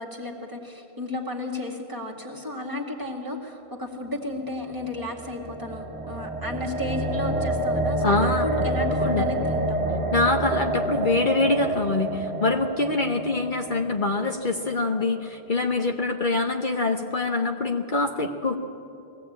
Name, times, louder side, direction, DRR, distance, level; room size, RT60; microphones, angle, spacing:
voice 1, 0.0-8.1 8.4-9.8, left 1 dB, 20° right, 0 dB, 2.2 m, -33 dB
sound 1, 4.6-14.8, right 2 dB, 85° right, 1.8 m, -28 dB
voice 2, 8.0-9.2 10.1-18.5, left 3 dB, 50° left, 4 dB, 1.0 m, -25 dB
20.5 x 16.0 x 8.7 m, 2.8 s
omnidirectional pair, 1.1 m